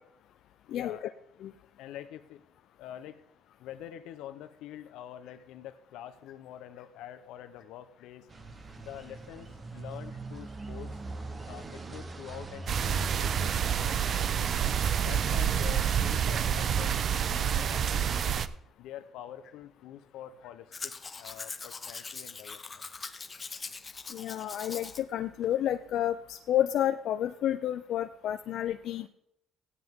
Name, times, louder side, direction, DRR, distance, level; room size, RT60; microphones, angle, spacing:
voice 1, 0.6-1.1 1.8-2.4 2.8-3.2 3.6-8.3 8.8-11.0 11.5-14.5 15.0-18.4 18.8-22.9, left 11 dB, 85° left, 11 dB, 0.9 m, -46 dB
sound 1, 8.3-18.5, right 2 dB, 25° right, 1.0 m, -43 dB
sound 2, 12.7-18.5, right 8 dB, 45° right, 0.5 m, -28 dB
Domestic sounds home sounds, 20.7-25.0 25.4-25.5, left 4 dB, 25° left, 0.8 m, -42 dB
voice 2, 24.1-29.1, left 11 dB, 65° left, 8 dB, 0.5 m, -30 dB
16.5 x 9.6 x 3.7 m, 0.84 s
cardioid pair, 125°, 0 cm